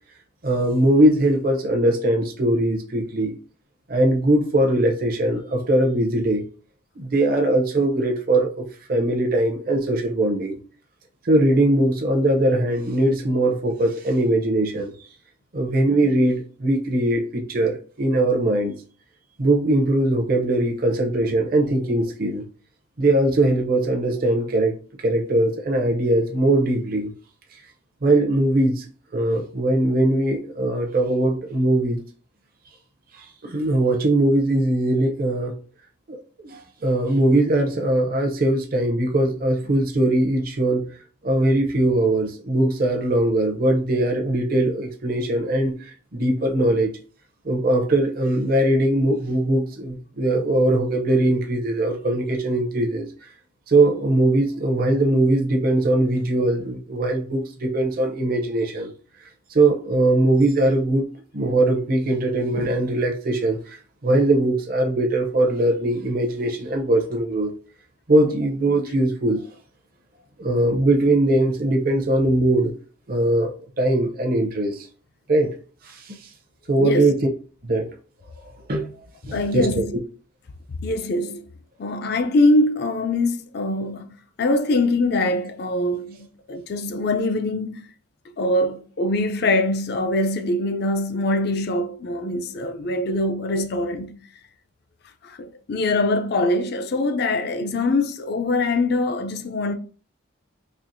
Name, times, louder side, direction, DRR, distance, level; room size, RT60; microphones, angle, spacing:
voice 1, 0.4-3.3 3.9-6.4 7.0-10.6 11.3-14.9 15.5-18.7 19.4-22.4 23.0-24.7 25.0-27.1 28.0-28.8 29.1-32.0 33.4-35.5 36.1-40.8 41.2-45.7 46.1-46.9 47.4-53.1 53.7-58.9 59.5-61.0 61.3-63.6 64.0-67.5 68.1-69.4 70.4-72.7 73.1-74.8 75.3-75.5 76.7-77.3 77.6-77.9 78.7-78.9 79.3-79.7, right 1 dB, 45° right, 0.6 m, -20 dB
voice 2, 76.8-77.1 79.3-79.8 80.8-81.4 81.8-84.0 84.4-87.8 88.4-94.1 95.2-99.8, left 2 dB, 50° left, 0.4 m, -23 dB
4.3 x 2.8 x 2.6 m
head